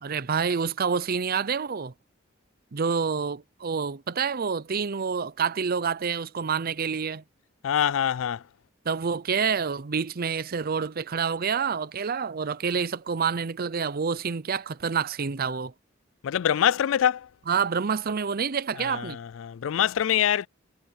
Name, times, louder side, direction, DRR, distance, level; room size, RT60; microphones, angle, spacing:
voice 1, 0.0-1.9 2.7-7.2 8.8-15.7 17.5-19.2, right 6 dB, 50° right, 0.6 m, -28 dB
voice 2, 7.6-8.4 16.2-17.3 18.8-20.5, left 9 dB, 75° left, 0.4 m, -24 dB
head